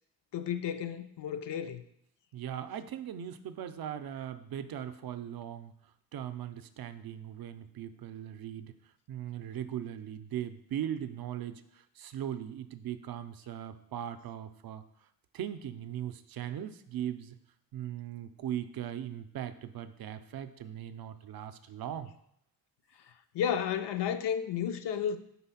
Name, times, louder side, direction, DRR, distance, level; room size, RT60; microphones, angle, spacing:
voice 1, 0.3-1.8 23.3-25.2, left 8 dB, 75° left, 0.6 m, -32 dB
voice 2, 2.3-5.7 6.1-8.7 9.1-14.8 15.3-17.3 17.7-22.1, right 10 dB, 60° right, 0.5 m, -39 dB
4.5 x 4.2 x 5.6 m
wide cardioid pair, 135°, 42 cm